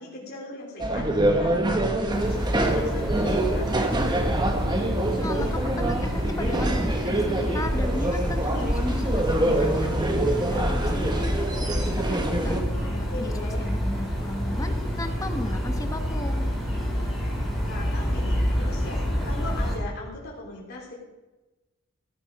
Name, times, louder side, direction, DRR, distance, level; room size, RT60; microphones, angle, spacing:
voice 1, 0.0-3.8 12.2-13.7 17.7-20.9, left 2 dB, 50° left, -4 dB, 3.1 m, -39 dB
sound 1, 0.8-12.6, right 1 dB, 20° right, 1.3 m, -25 dB
sound 2, 2.1-19.8, equal, ahead, 5.7 m, -28 dB
voice 2, 5.2-9.9 10.4-16.5, left 1 dB, 15° left, 6 dB, 1.2 m, -36 dB
14.5 x 10.0 x 5.2 m, 1.1 s
head